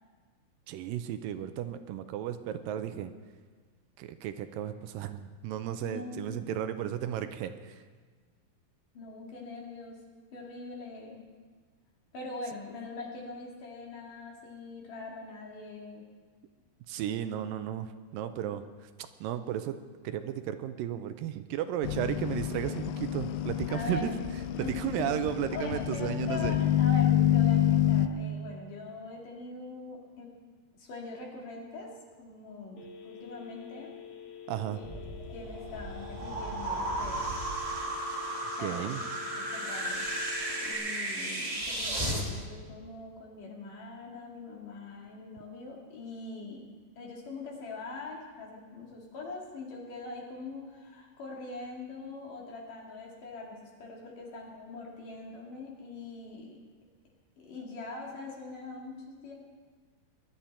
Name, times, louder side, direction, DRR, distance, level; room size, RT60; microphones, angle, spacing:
voice 1, 0.7-3.1 4.0-7.8 16.9-18.6 19.2-19.8 20.0-24.1 24.6-26.5 34.5-34.8 38.6-39.0, right 10 dB, 80° right, 10 dB, 2.2 m, -34 dB
voice 2, 5.8-6.5 8.9-10.0 10.3-11.2 12.1-16.0 23.7-24.2 24.6-25.1 25.5-30.3 30.8-31.9 32.2-33.9 34.7-37.4 38.5-38.9 39.4-46.6 47.0-56.6 57.4-59.3, left 3 dB, 60° left, -2 dB, 3.9 m, -42 dB
sound 1, 21.8-28.1, left 11 dB, 80° left, 2.1 m, -28 dB
Telephone, 32.8-40.7, left 9 dB, 45° left, 2.3 m, -47 dB
sound 2, 34.8-42.2, right 1 dB, 30° right, 0.6 m, -34 dB
21.0 x 11.5 x 4.4 m, 1.5 s
omnidirectional pair, 4.4 m